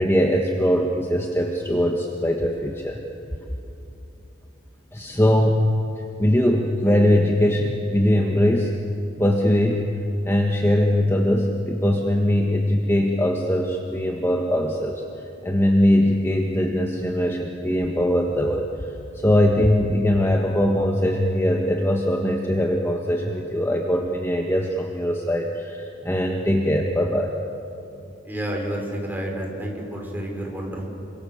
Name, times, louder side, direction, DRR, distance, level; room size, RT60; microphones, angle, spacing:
voice 1, 0.0-3.0 4.9-5.7 6.2-8.7 9.2-9.9 10.2-15.0 15.4-27.3, left 1 dB, 15° left, 1 dB, 1.4 m, -21 dB
voice 2, 28.2-30.9, right 1 dB, 10° right, -1 dB, 5.0 m, -30 dB
28.0 x 25.0 x 7.2 m, 2.7 s
head